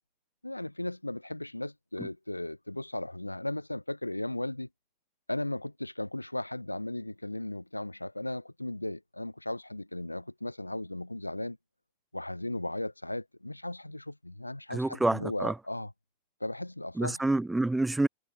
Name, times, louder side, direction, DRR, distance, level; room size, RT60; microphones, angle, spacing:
voice 1, 0.4-4.7 5.3-11.6 12.1-15.9 16.4-17.2, left 1 dB, 85° left, 1.0 m, -36 dB
voice 2, 14.7-15.5 17.0-18.1, right 2 dB, 5° right, 0.3 m, -27 dB
figure-of-eight pair, 90°, 0 cm